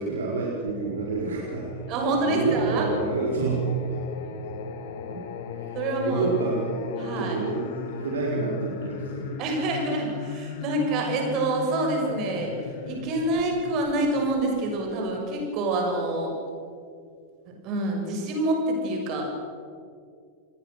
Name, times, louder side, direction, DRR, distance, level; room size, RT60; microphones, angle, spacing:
voice 1, 0.0-1.8 2.2-3.8 5.1-5.2 5.5-9.3, right 3 dB, 65° right, -3 dB, 4.5 m, -28 dB
Singing, 0.7-15.4, left 7 dB, 55° left, 1.9 m, -38 dB
voice 2, 1.9-2.9 5.7-6.3 7.0-7.4 9.4-16.3 17.6-19.3, right 2 dB, 40° right, 1 dB, 6.8 m, -27 dB
28.5 x 20.5 x 6.5 m, 2.3 s
figure-of-eight pair, 90°, 0 cm